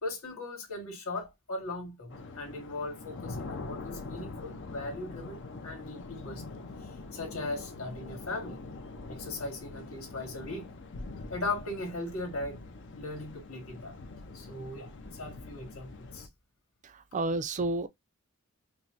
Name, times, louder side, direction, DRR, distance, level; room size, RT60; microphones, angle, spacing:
voice 1, 0.0-6.6 7.1-8.6 9.1-10.7 11.3-12.6 13.0-14.0 14.3-16.3, left 2 dB, 80° left, 2.0 m, -38 dB
sound 1, 2.1-16.3, left 3 dB, 60° left, 0.6 m, -44 dB
voice 2, 16.8-17.9, right 2 dB, 35° right, 0.4 m, -31 dB
5.3 x 2.0 x 2.8 m
head